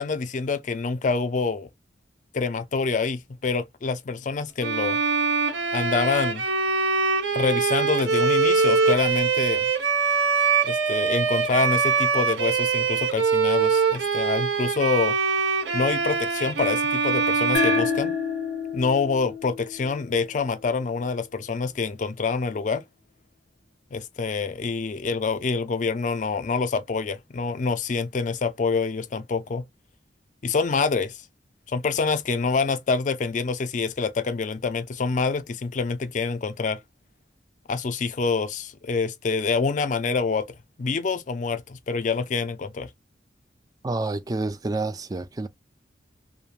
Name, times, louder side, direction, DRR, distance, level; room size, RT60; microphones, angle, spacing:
voice 1, 0.0-1.7 2.3-5.0 5.7-6.4 7.3-9.7 10.6-15.2 15.7-18.1 18.7-22.8 23.9-29.6 30.4-31.2 31.7-36.8 37.7-40.5 40.8-42.9, left 4 dB, 45° left, 0.4 m, -26 dB
Bowed string instrument, 4.6-18.7, right 5 dB, 90° right, 0.7 m, -23 dB
sound 1, 17.5-20.7, left 6 dB, 80° left, 0.8 m, -29 dB
voice 2, 43.8-45.5, right 2 dB, 20° right, 0.4 m, -28 dB
3.1 x 2.1 x 2.3 m
head